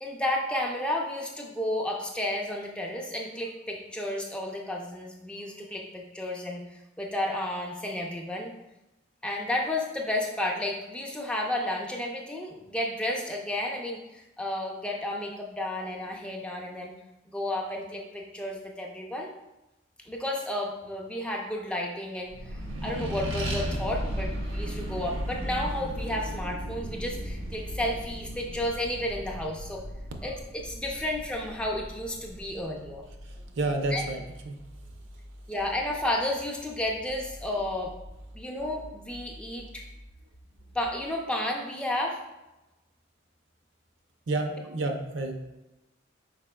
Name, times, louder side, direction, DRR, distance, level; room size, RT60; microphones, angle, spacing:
voice 1, 0.0-8.5 9.2-16.9 17.3-19.3 20.1-22.3 22.8-29.8 30.2-33.0 33.9-34.0 35.5-37.9 38.3-39.8 40.7-42.2, left 1 dB, 5° left, 0 dB, 0.4 m, -32 dB
Accelerating revving vroom, 22.3-33.2, equal, 90° right, 0.9 m, -36 dB
sound 1, 25.6-41.1, equal, 55° left, 0.6 m, -47 dB
voice 2, 33.2-34.6 44.3-45.3, right 2 dB, 70° right, 4 dB, 0.5 m, -30 dB
4.8 x 4.3 x 2.2 m, 0.98 s
head